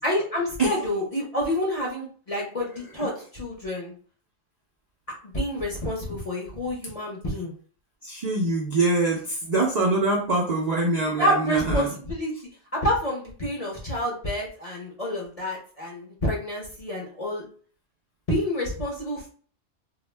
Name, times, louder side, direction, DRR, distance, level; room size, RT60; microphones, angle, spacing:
voice 1, 0.0-3.9 5.2-7.5 11.2-12.3 12.7-17.4 18.3-19.3, equal, 40° left, -4 dB, 0.6 m, -28 dB
voice 2, 8.0-11.9, right 2 dB, 75° right, -2 dB, 0.3 m, -24 dB
2.3 x 2.0 x 3.2 m, 0.43 s
omnidirectional pair, 1.4 m